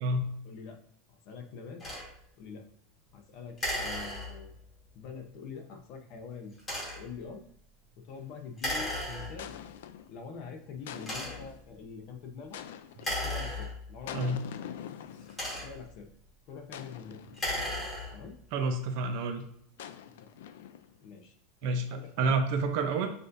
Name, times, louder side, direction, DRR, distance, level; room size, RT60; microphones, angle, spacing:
voice 1, 0.4-0.8 1.1-1.8 2.4-2.7 3.1-4.5 4.9-6.6 7.0-7.4 8.0-9.5 10.1-12.6 13.2-14.6 15.6-16.1 16.5-17.2 18.1-18.4 20.2-20.3 21.0-22.3, left 5 dB, 40° left, 4 dB, 0.7 m, -45 dB
sound 1, 1.8-2.1 3.6-4.6 6.6-7.1 8.6-9.6 10.3-10.4 11.0-11.6 12.9-14.1 15.1-16.0 17.2-18.3, left 1 dB, 15° left, 1.5 m, -35 dB
sound 2, 8.1-8.4 9.4-10.2 10.9-11.7 12.5-13.3 14.1-15.7 16.7-17.9 19.8-21.0, left 10 dB, 85° left, 0.3 m, -45 dB
voice 2, 18.5-19.4 21.6-21.9 22.2-23.1, right 3 dB, 50° right, 6 dB, 0.6 m, -28 dB
6.4 x 2.6 x 2.6 m, 0.68 s
supercardioid pair, 170°, 0 cm